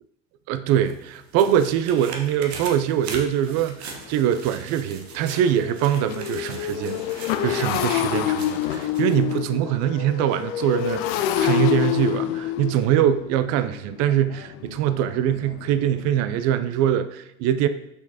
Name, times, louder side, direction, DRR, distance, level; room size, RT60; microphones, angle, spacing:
voice 1, 0.5-7.0 7.4-17.7, right 10 dB, 55° right, 11 dB, 0.5 m, -23 dB
sound 1, 0.7-9.4 9.8-9.9, right 4 dB, 80° right, 1.0 m, -40 dB
Motorcycle, 3.5-3.6 4.1-4.2 4.5-16.1, left 12 dB, 65° left, 0.5 m, -27 dB
6.8 x 5.8 x 2.8 m, 0.84 s
hypercardioid pair, 65°, 32 cm